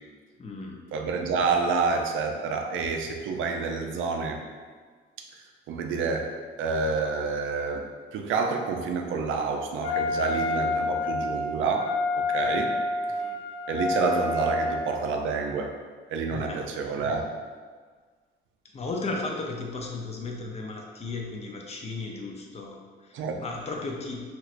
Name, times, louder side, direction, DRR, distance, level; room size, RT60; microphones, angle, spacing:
voice 1, 0.4-0.8 13.1-13.4 16.3-16.7 18.6-24.2, left 3 dB, 35° left, 0 dB, 0.5 m, -35 dB
voice 2, 0.9-4.4 5.7-6.3 6.6-7.9 8.1-11.9 12.2-12.7 13.7-15.7 16.1-17.2 23.1-23.4, right 4 dB, 80° right, 3 dB, 0.4 m, -28 dB
Wind instrument woodwind instrument, 9.8-15.1, left 3 dB, 55° left, 1.3 m, -28 dB
3.1 x 2.9 x 2.5 m, 1.5 s
cardioid pair, 90°, 20 cm